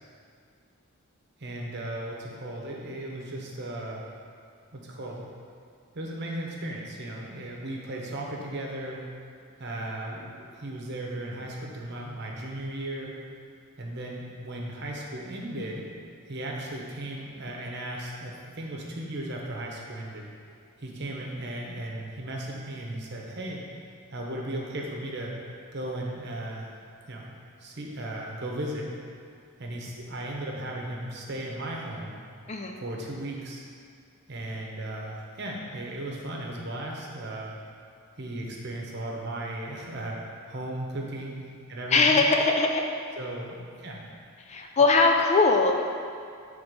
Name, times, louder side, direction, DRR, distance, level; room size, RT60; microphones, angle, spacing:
voice 1, 1.4-4.0 4.7-5.2 5.9-9.0 9.6-13.2 13.8-15.8 16.3-20.3 20.8-23.6 24.1-25.3 25.7-26.7 27.1-27.2 27.6-28.9 29.6-32.2 32.8-33.6 34.3-37.5 38.2-40.2 40.5-42.3 43.2-44.0 44.8-44.9, right 1 dB, 50° right, -1 dB, 1.0 m, -36 dB
voice 2, 41.9-42.8 44.4-45.8, left 3 dB, 30° left, 3 dB, 0.4 m, -21 dB
7.8 x 3.6 x 5.1 m, 2.3 s
head